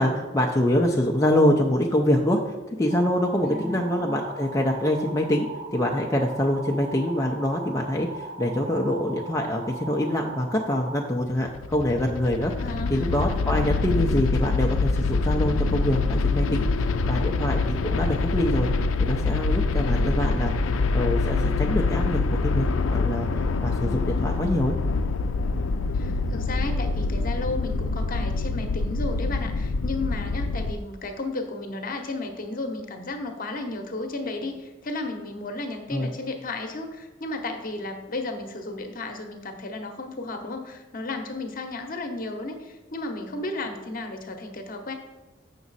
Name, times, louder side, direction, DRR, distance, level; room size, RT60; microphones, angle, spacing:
voice 1, 0.0-12.5 12.9-16.6 17.1-18.7 19.0-20.5 20.9-23.3 23.6-24.8 35.9-36.1, left 1 dB, 15° left, -1 dB, 0.5 m, -25 dB
sound 1, 2.9-11.0, right 3 dB, 40° right, 1.2 m, -39 dB
voice 2, 3.4-3.8 12.6-13.1 19.7-20.3 25.9-44.9, left 2 dB, 45° left, 5 dB, 0.9 m, -33 dB
sound 2, 11.3-30.7, left 3 dB, 85° left, 0.5 m, -25 dB
7.4 x 6.0 x 4.0 m, 1.1 s
head